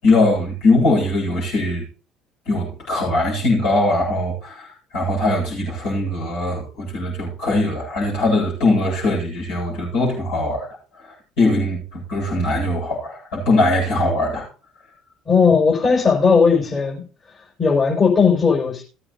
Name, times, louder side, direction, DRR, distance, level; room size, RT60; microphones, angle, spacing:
voice 1, 0.0-1.8 2.5-10.7 11.0-14.5, left 2 dB, 65° left, 7.8 m, -21 dB
voice 2, 15.3-17.0 17.6-18.8, left 5 dB, 35° left, 5.7 m, -16 dB
19.5 x 8.9 x 2.8 m
figure-of-eight pair, 60°, 0 cm